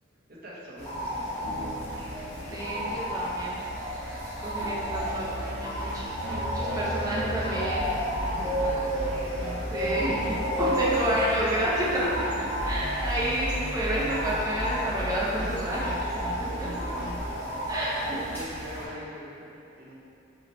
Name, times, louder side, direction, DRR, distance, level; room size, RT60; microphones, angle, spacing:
voice 1, 0.4-1.8 8.2-10.0 10.5-10.6 15.2-15.6 16.3-17.3 18.0-19.5 19.8-19.9, equal, 50° right, -6 dB, 0.8 m, -44 dB
sound 1, 0.8-18.8, equal, 10° left, 1.4 m, -32 dB
sound 2, 1.4-11.0, left 1 dB, 60° left, 1.2 m, -43 dB
voice 2, 2.5-3.6 4.4-7.9 9.7-12.2 12.6-16.0 17.7-18.2, right 1 dB, 20° right, -7 dB, 0.7 m, -30 dB
sound 3, 4.6-17.2, right 1 dB, 80° right, 1.4 m, -35 dB
5.6 x 3.1 x 3.0 m, 2.7 s
head